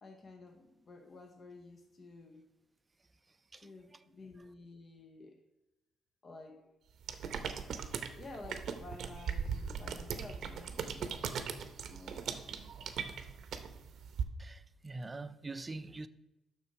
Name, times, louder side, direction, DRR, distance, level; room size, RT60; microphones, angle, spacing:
voice 1, 0.0-2.4 3.6-5.5 6.2-6.8 8.0-11.2 11.8-12.5, left 2 dB, 40° left, 0.8 m, -52 dB
sound 1, 7.0-14.2, right 7 dB, 70° right, 0.7 m, -39 dB
voice 2, 14.4-16.1, right 3 dB, 25° right, 0.4 m, -44 dB
6.7 x 6.1 x 4.7 m
cardioid pair, 90°, 0 cm